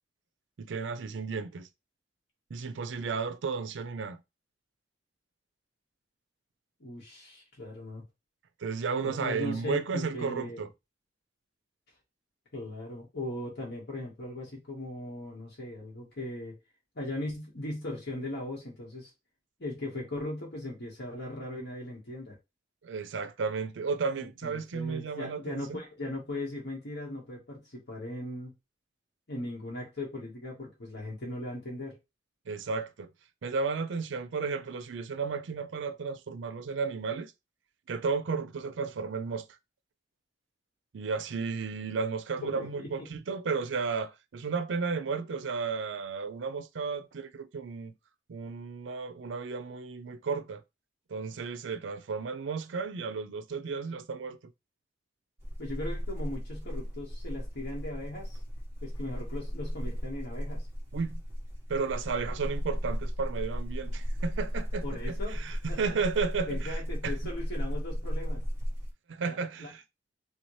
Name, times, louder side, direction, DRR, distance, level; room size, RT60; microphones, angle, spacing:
voice 1, 0.6-1.7 2.5-4.2 8.6-10.7 22.8-25.8 32.5-33.1 33.4-37.3 37.9-39.5 40.9-47.9 48.3-50.6 51.1-54.4 60.9-61.2 61.7-67.1 69.1-69.8, right 5 dB, 70° right, 0.4 m, -33 dB
voice 2, 6.8-8.0 9.0-10.6 12.5-16.6 16.9-19.1 19.6-22.4 24.2-28.5 29.3-32.0 42.4-43.1 55.6-58.4 58.8-60.7 64.8-65.8 66.5-68.4 69.2-69.7, left 1 dB, 60° left, 1.5 m, -38 dB
sound 1, 55.4-68.9, equal, 15° right, 1.1 m, -35 dB
3.4 x 2.8 x 3.1 m
head